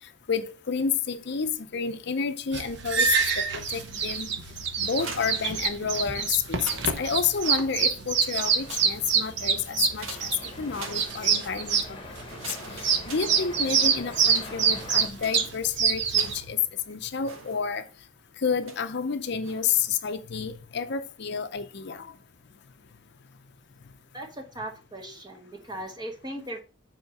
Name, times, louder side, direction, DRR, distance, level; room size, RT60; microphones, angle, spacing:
voice 1, 0.0-4.3 4.8-12.1 12.4-16.6 16.9-17.9 18.4-22.1, left 6 dB, 55° left, 0.6 m, -30 dB
sound 1, 1.0-2.9 3.2-4.7 5.0-5.1 5.4-15.1, left 2 dB, 25° left, 1.1 m, -45 dB
sound 2, 2.5-16.4, right 6 dB, 55° right, 0.9 m, -26 dB
sound 3, 4.8-6.0 6.4-8.0 8.3-9.3 10.0-11.5 12.2-13.9 14.3-16.7 17.2-18.0 18.6-19.0 19.4-19.9, right 4 dB, 85° right, 1.4 m, -44 dB
voice 2, 24.1-26.6, right 1 dB, 20° right, 1.1 m, -38 dB
7.2 x 3.7 x 5.2 m
head